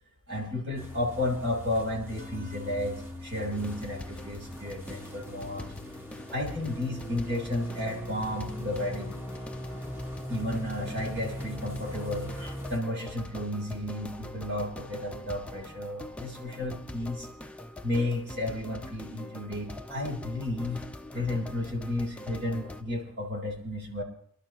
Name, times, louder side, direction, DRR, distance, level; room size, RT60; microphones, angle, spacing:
voice 1, 0.3-5.7 6.3-9.2 10.3-17.3 17.8-20.8 21.1-24.0, left 1 dB, 50° right, 1 dB, 3.5 m, -33 dB
sound 1, 0.8-12.8, equal, 10° right, 1.5 m, -40 dB
sound 2, 2.2-12.6, equal, 30° right, 1.6 m, -51 dB
sound 3, 3.5-22.8, left 1 dB, 5° left, 0.5 m, -44 dB
26.0 x 12.0 x 3.0 m, 0.65 s
head